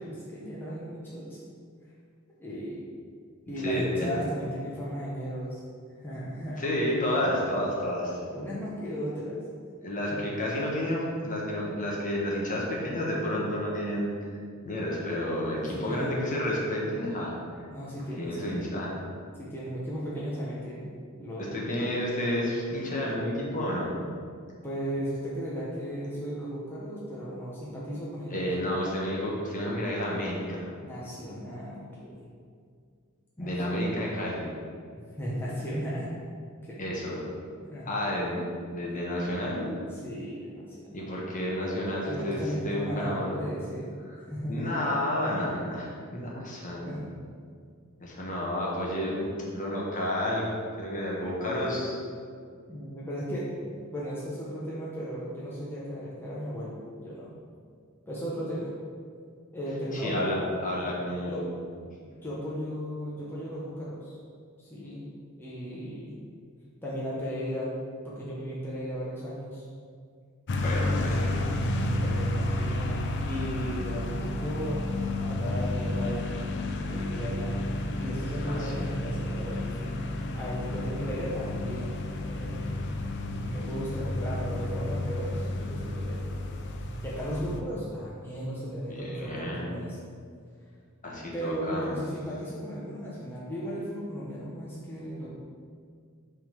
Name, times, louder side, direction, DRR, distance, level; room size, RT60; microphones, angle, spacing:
voice 1, 0.0-1.4 2.4-2.8 3.5-5.6 6.0-6.7 8.3-9.4 10.1-10.2 15.6-16.2 17.7-18.6 19.4-21.7 24.6-28.5 30.8-32.2 33.4-33.8 35.2-36.1 36.6-36.8 37.7-37.9 39.9-41.1 41.8-43.9 44.3-44.7 45.2-45.3 46.9-47.2 52.7-57.3 58.1-58.7 59.5-60.3 61.3-61.5 62.2-64.2 64.6-65.1 65.4-66.2 66.8-67.7 68.0-69.7 71.8-74.8 75.2-76.4 76.8-77.6 78.0-82.8 83.3-86.2 87.0-90.0 91.3-95.3, equal, 10° left, -8 dB, 0.9 m, -36 dB
voice 2, 3.6-4.2 6.6-8.2 9.8-14.1 14.6-17.3 18.2-19.0 21.5-23.9 28.3-30.7 33.4-34.5 36.8-37.2 37.8-38.4 38.7-39.7 40.9-43.5 44.1-44.2 44.5-46.8 48.0-49.2 49.5-50.5 50.8-51.9 59.9-61.5 70.6-71.4 78.4-78.9 88.9-89.6 91.0-91.9, left 1 dB, 35° left, -4 dB, 1.2 m, -30 dB
sound 1, 70.5-87.6, left 1 dB, 55° left, 0.5 m, -31 dB
5.8 x 3.8 x 5.1 m, 2.1 s
head